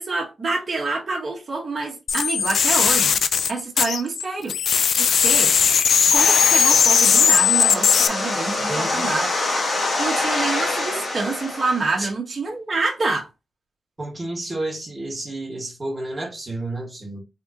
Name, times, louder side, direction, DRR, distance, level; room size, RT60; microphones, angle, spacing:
voice 1, 0.0-3.2 3.5-4.5 5.0-5.5 6.1-9.3 10.0-13.3, right 3 dB, 45° right, 1.5 m, -27 dB
sound 1, 2.1-4.2 4.5-8.1, left 7 dB, 80° left, 0.3 m, -18 dB
sound 2, 6.1-12.0, left 2 dB, 50° left, 1.4 m, -26 dB
voice 2, 8.6-9.1 12.0-12.1 14.0-17.2, right 2 dB, 20° right, 1.8 m, -31 dB
3.8 x 3.3 x 2.8 m
wide cardioid pair, 125°, 0 cm